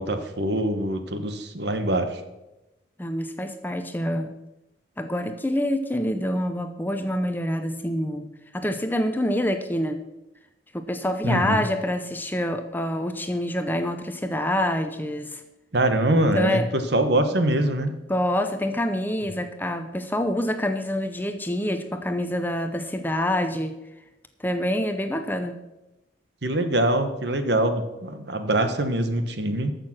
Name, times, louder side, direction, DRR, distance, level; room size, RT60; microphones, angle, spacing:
voice 1, 0.0-2.2 11.2-11.7 15.7-17.9 26.4-29.7, right 1 dB, 60° right, 8 dB, 1.2 m, -24 dB
voice 2, 3.0-4.3 5.0-10.0 10.7-15.4 16.3-16.7 18.1-23.8 24.4-25.6, left 1 dB, 10° left, 7 dB, 0.7 m, -26 dB
14.0 x 6.7 x 6.0 m, 0.98 s
head